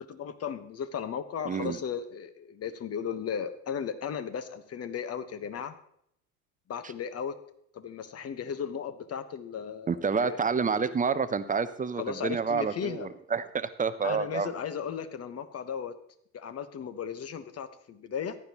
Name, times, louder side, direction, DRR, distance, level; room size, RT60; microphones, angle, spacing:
voice 1, 0.1-5.8 6.7-7.3 7.7-10.4 12.0-13.1 14.0-15.9 16.3-18.4, left 7 dB, 30° left, 11 dB, 1.3 m, -36 dB
voice 2, 1.5-1.8 9.9-14.5, right 5 dB, 20° right, 12 dB, 0.7 m, -29 dB
15.0 x 11.0 x 3.0 m, 0.69 s
hypercardioid pair, 75°, 46 cm